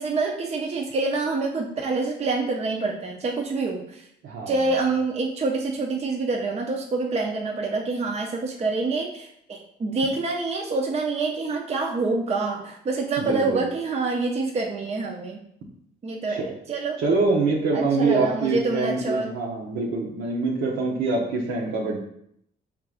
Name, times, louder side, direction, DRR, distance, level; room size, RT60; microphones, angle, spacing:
voice 1, 0.0-4.1 4.5-15.4 16.0-17.0 17.7-19.4, right 3 dB, 35° right, 1 dB, 0.5 m, -26 dB
voice 2, 4.2-4.5 13.2-13.6 16.3-16.5 17.0-22.0, right 3 dB, 80° right, -3 dB, 0.8 m, -25 dB
4.5 x 3.6 x 2.4 m, 0.72 s
cardioid pair, 90°, 20 cm